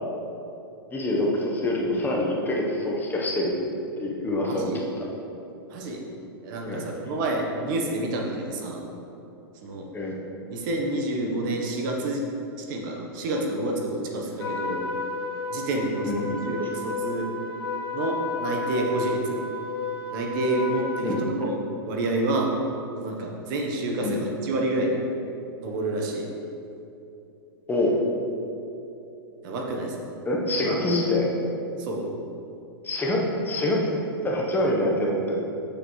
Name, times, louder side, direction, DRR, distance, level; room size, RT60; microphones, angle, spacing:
voice 1, 0.9-3.5 4.0-4.7 6.7-6.8 9.9-10.1 16.0-16.2 21.0-21.2 24.0-24.2 27.7-28.0 30.2-31.3 32.8-33.9 34.2-35.4, left 1 dB, 15° left, -2 dB, 1.0 m, -25 dB
voice 2, 4.4-4.8 5.7-6.0 6.4-8.8 9.6-9.9 10.5-12.2 12.6-14.8 15.5-17.3 17.9-19.4 20.1-21.6 21.8-22.5 23.0-25.0 25.6-26.3 29.4-30.1 30.6-30.8 31.8-32.1, right 2 dB, 50° right, 1 dB, 1.1 m, -28 dB
Trumpet, 14.4-21.3, left 4 dB, 70° left, 1.6 m, -32 dB
7.7 x 6.6 x 3.2 m, 2.8 s
hypercardioid pair, 125°, 13 cm